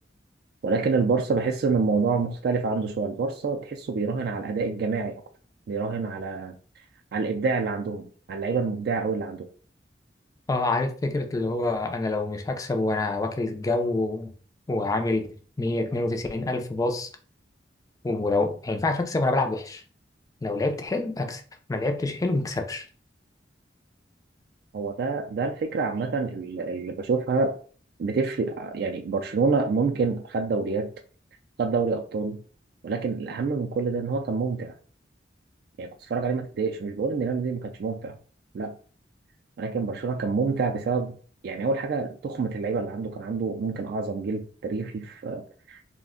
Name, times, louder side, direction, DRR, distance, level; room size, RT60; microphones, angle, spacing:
voice 1, 0.6-5.2 5.7-6.5 7.1-9.5 24.7-27.6 28.0-30.9 31.6-32.4 32.8-34.7 35.8-38.2 38.5-38.8 39.6-41.2 41.4-45.8, right 4 dB, 60° right, 0.3 m, -27 dB
voice 2, 10.5-14.3 14.7-15.3 15.6-17.1 18.0-19.8 20.4-21.4 21.7-22.9, left 2 dB, 20° left, 0.3 m, -26 dB
2.4 x 2.1 x 3.6 m
head